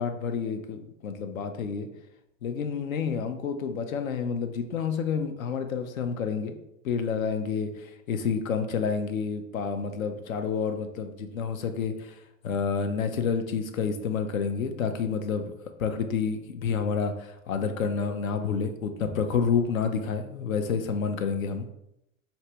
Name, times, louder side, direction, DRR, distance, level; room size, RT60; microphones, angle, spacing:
voice 1, 0.0-1.9 2.4-6.5 6.8-12.1 12.4-15.5 15.8-21.7, left 6 dB, 85° left, 8 dB, 0.7 m, -29 dB
4.4 x 3.0 x 3.4 m, 0.83 s
hypercardioid pair, 100°, 40 cm